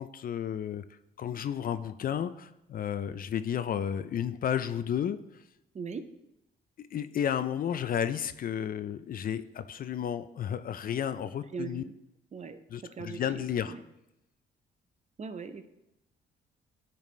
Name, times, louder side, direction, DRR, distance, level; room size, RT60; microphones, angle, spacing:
voice 1, 0.0-5.4 6.8-11.8 12.7-13.8, left 9 dB, 45° left, 12 dB, 0.4 m, -32 dB
voice 2, 5.7-6.1 11.5-11.9 12.3-13.8 15.2-15.7, right 5 dB, 35° right, 10 dB, 0.6 m, -40 dB
10.5 x 4.1 x 3.1 m, 0.89 s
cardioid pair, 90°, 20 cm